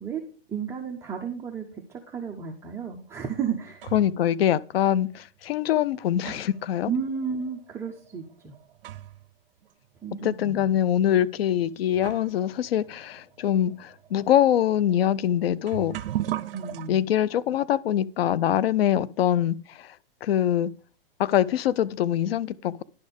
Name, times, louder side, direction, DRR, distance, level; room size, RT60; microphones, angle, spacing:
voice 1, 0.5-3.8 6.8-8.5 10.0-10.7 16.5-17.0, right 6 dB, 10° right, 0.5 m, -33 dB
sound 1, 3.1-4.2 5.1-5.2 5.9-9.3 9.6-9.7 10.5-10.7 11.5-11.6 11.9-16.9, right 13 dB, 70° right, 0.6 m, -38 dB
voice 2, 3.9-6.9 10.2-16.0 16.9-19.9 20.2-20.7 21.2-22.8, left 11 dB, 85° left, 0.5 m, -24 dB
10.5 x 4.3 x 5.1 m
hypercardioid pair, 145°, 29 cm